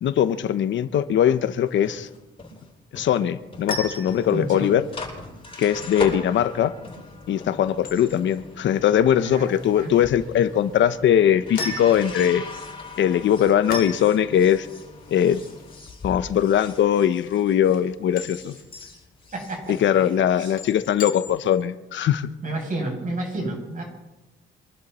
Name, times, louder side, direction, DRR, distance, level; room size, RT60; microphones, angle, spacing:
voice 1, 0.0-2.1 2.9-4.8 5.6-6.7 7.3-12.4 13.0-14.7 15.1-15.4 16.0-18.5 19.7-22.3, left 10 dB, 70° left, 12 dB, 1.0 m, -21 dB
tcr soundscape hcfr-manon-anouk, 1.7-17.9 18.1-20.7, left 3 dB, 30° left, 7.9 m, -39 dB
sound 1, 3.4-21.6, left 3 dB, 50° left, 3.6 m, -39 dB
voice 2, 4.3-4.7 9.2-9.5 9.8-9.9 19.3-20.0 20.4-20.5 22.4-23.8, right 2 dB, 40° right, 0 dB, 7.9 m, -30 dB
26.0 x 12.0 x 4.4 m, 1.0 s
cardioid pair, 90°, 20 cm